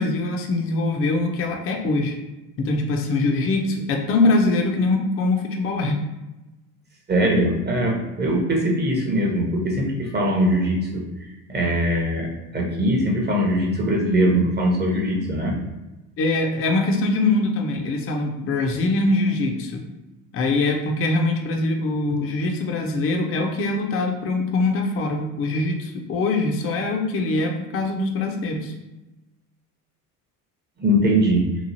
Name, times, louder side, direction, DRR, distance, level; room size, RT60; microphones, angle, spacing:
voice 1, 0.0-2.2 2.6-6.0 14.9-15.2 16.2-19.8 20.3-28.7, left 2 dB, 30° left, 2 dB, 0.5 m, -23 dB
voice 2, 7.1-15.6 30.8-31.4, equal, 20° right, 0 dB, 0.8 m, -21 dB
3.0 x 2.3 x 2.6 m, 1.0 s
hypercardioid pair, 70°, 45 cm